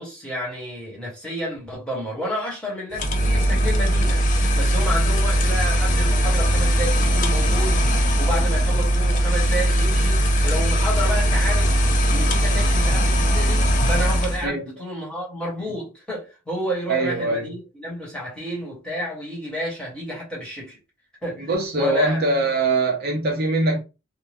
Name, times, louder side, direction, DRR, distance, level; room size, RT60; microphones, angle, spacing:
voice 1, 0.0-4.2 4.5-7.8 8.2-11.7 12.1-20.8 21.2-22.3, equal, 5° left, 1.1 m, -30 dB
sound 1, 2.9-14.5, equal, 35° left, 0.4 m, -19 dB
voice 2, 16.9-17.5 21.4-23.8, right 2 dB, 45° right, 0.6 m, -22 dB
2.7 x 2.1 x 3.3 m
head